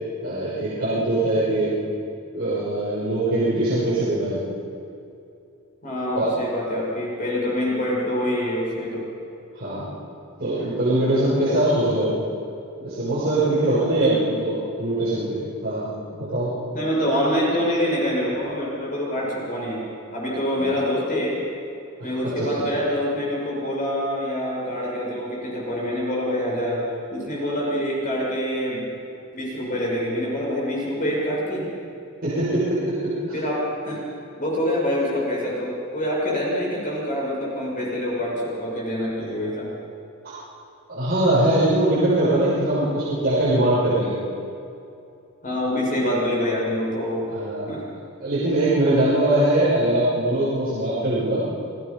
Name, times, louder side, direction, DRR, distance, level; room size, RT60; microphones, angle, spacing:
voice 1, 0.2-1.8 2.3-4.4 6.1-6.3 9.5-9.9 10.4-12.2 12.8-15.9 16.1-16.5 20.6-20.7 22.0-22.7 32.2-33.1 40.2-40.3 40.9-44.1 47.3-47.7 48.2-51.4, right 1 dB, 45° right, -11 dB, 6.5 m, -22 dB
voice 2, 5.8-9.1 14.0-14.2 16.7-19.8 20.1-21.4 22.0-26.8 27.1-28.9 29.3-31.6 33.3-34.0 34.4-39.7 45.4-47.2 47.7-47.8, equal, 40° left, -4 dB, 6.6 m, -25 dB
28.5 x 18.5 x 5.6 m, 2.7 s
head